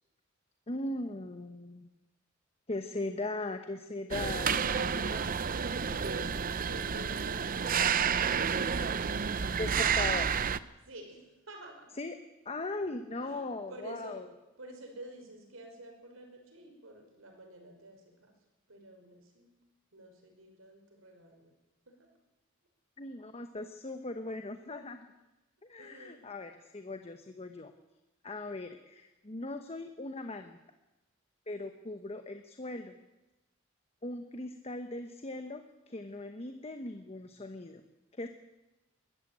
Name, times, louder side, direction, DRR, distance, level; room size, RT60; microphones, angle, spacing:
voice 1, 0.7-1.9 2.7-4.7 9.6-10.3 12.0-12.2 12.4-14.3 23.0-25.1 25.6-27.7 28.2-30.6 31.5-33.0 34.0-37.8 38.2-38.3, left 2 dB, 30° left, 7 dB, 1.1 m, -39 dB
sound 1, 4.1-10.6, right 6 dB, 45° right, 0.6 m, -30 dB
voice 2, 4.4-8.2 10.8-11.9 13.2-14.2 14.6-18.3 18.7-19.5 19.9-21.5 21.9-22.1 25.8-26.3, right 1 dB, 85° right, 3 dB, 5.3 m, -49 dB
21.5 x 13.5 x 8.8 m, 1.0 s
head